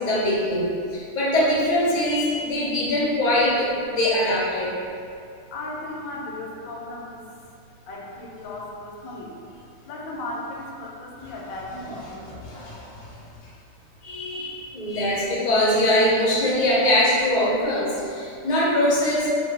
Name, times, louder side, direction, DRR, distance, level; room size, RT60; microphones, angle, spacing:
voice 1, 0.0-4.7 12.1-13.2 14.0-19.3, left 1 dB, 45° left, -7 dB, 0.6 m, -22 dB
voice 2, 5.5-7.3 7.9-9.4 9.9-12.1 12.6-12.7 14.6-14.7, left 2 dB, 85° left, -2 dB, 1.0 m, -36 dB
2.4 x 2.4 x 3.4 m, 2.4 s
omnidirectional pair, 1.4 m